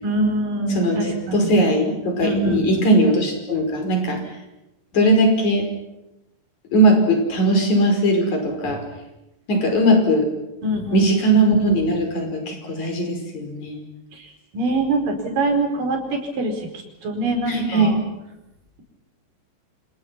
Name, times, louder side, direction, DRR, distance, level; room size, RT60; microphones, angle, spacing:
voice 1, 0.0-1.5 2.2-2.8 10.6-11.1 14.5-16.7 17.0-17.9, right 2 dB, 65° right, 3 dB, 6.3 m, -24 dB
voice 2, 0.7-4.2 4.9-5.7 6.7-8.8 9.5-10.3 10.9-13.8 17.5-18.0, right 1 dB, 50° left, 4 dB, 6.6 m, -19 dB
28.5 x 27.0 x 5.9 m, 0.93 s
omnidirectional pair, 4.1 m